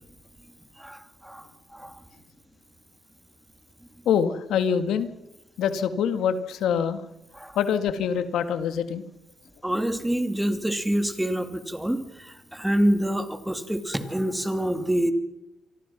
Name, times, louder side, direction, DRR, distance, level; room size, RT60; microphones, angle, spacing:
voice 1, 0.8-1.5 1.7-2.0 7.3-7.6 9.6-15.1, right 1 dB, 5° right, 8 dB, 2.8 m, -26 dB
voice 2, 4.1-5.1 5.6-7.0 7.6-9.0, left 7 dB, 80° left, 9 dB, 1.8 m, -25 dB
27.5 x 24.5 x 6.0 m, 0.91 s
cardioid pair, 90°, 0 cm